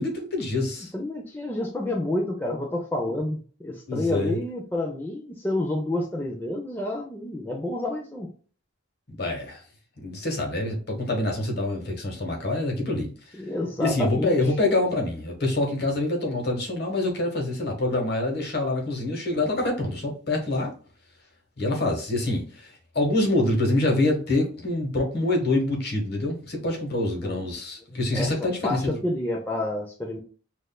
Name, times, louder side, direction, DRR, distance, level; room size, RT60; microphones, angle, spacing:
voice 1, 0.0-0.9 3.9-4.4 9.1-9.6 10.0-13.1 13.8-20.7 21.6-29.0, left 2 dB, 50° left, 1 dB, 1.3 m, -26 dB
voice 2, 0.9-8.3 13.4-14.3 27.2-27.4 27.9-28.3 28.6-30.2, left 1 dB, 10° left, -1 dB, 0.5 m, -29 dB
6.2 x 2.5 x 2.3 m, 0.40 s
head